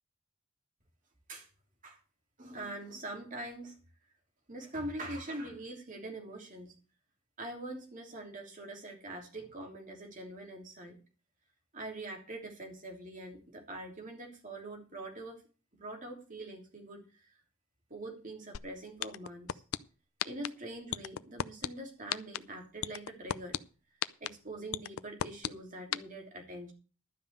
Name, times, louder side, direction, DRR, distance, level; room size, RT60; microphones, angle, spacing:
voice 1, 2.4-3.8 4.5-6.7 7.4-11.0 11.7-15.4 15.7-17.3 17.9-19.6 20.2-23.6 24.2-26.7, right 1 dB, 40° right, 2 dB, 3.1 m, -43 dB
sound 1, 18.5-18.6 19.0-19.8 20.2-20.5 20.9-21.7 22.1-22.4 22.8-23.6 24.0-24.3 24.7-25.5 25.9-26.0, left 9 dB, 90° left, 0.5 m, -32 dB
12.0 x 5.5 x 8.2 m, 0.35 s
head